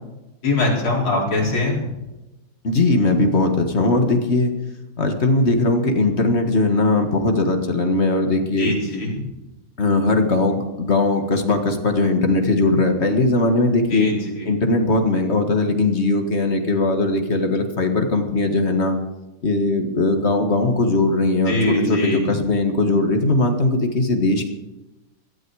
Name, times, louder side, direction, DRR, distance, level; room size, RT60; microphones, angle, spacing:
voice 1, 0.4-2.0 8.6-9.2 13.9-14.5 21.5-22.2, left 2 dB, 75° left, -3 dB, 5.0 m, -22 dB
voice 2, 2.6-4.5 5.0-8.7 9.8-14.2 14.5-19.0 19.4-24.5, left 2 dB, 35° left, 5 dB, 1.8 m, -19 dB
17.5 x 13.0 x 4.8 m, 1.0 s
omnidirectional pair, 2.4 m